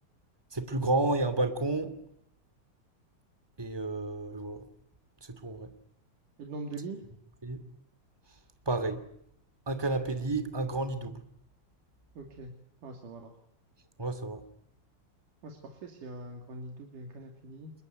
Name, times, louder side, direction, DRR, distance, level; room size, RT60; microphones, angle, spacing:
voice 1, 0.5-2.0 3.6-4.7 5.2-5.7 7.4-7.7 8.7-9.1 9.7-11.2 14.0-14.4, right 2 dB, 10° right, 1.7 m, -31 dB
voice 2, 6.4-7.0 12.2-12.5 12.8-13.3 15.4-17.7, right 2 dB, 65° right, 4.1 m, -42 dB
28.0 x 22.5 x 9.5 m
omnidirectional pair, 4.2 m